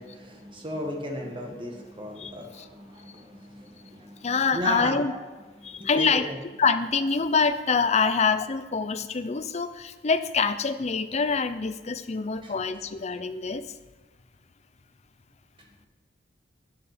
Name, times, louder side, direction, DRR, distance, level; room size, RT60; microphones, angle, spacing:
voice 1, 0.0-5.2 5.5-6.4 12.4-12.5, equal, 30° right, 2 dB, 1.8 m, -36 dB
voice 2, 2.2-2.6 4.2-5.1 5.6-6.3 6.6-13.7, left 5 dB, 40° left, 11 dB, 0.6 m, -25 dB
10.5 x 9.6 x 5.1 m, 1.3 s
head